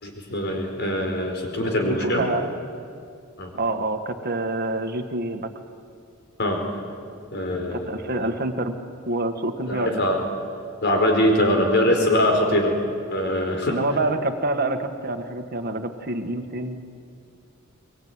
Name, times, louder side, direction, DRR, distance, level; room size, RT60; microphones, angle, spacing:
voice 1, 0.0-2.2 3.4-3.5 6.4-6.6 7.3-7.9 9.7-10.2 10.8-12.7 13.1-13.8, left 1 dB, 50° left, 3 dB, 4.6 m, -22 dB
voice 2, 1.8-2.5 3.6-5.5 7.5-8.8 9.1-10.0 13.7-16.8, right 2 dB, 45° right, 5 dB, 1.7 m, -27 dB
23.0 x 22.5 x 9.5 m, 2.4 s
head